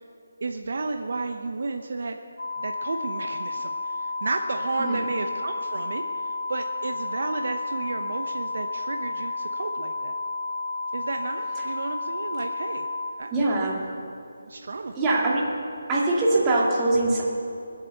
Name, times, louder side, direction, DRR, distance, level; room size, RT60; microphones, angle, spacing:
voice 1, 0.4-2.2 2.6-10.2 10.9-12.9 13.2-13.3 14.4-14.9, right 3 dB, 55° right, 5 dB, 0.9 m, -32 dB
sound 1, 2.4-13.1, left 3 dB, 70° left, 2.0 m, -31 dB
voice 2, 13.3-13.9 15.0-15.5 15.9-17.2, right 2 dB, 15° right, -5 dB, 2.3 m, -23 dB
20.5 x 8.4 x 8.0 m, 2.6 s
figure-of-eight pair, 170°, 0 cm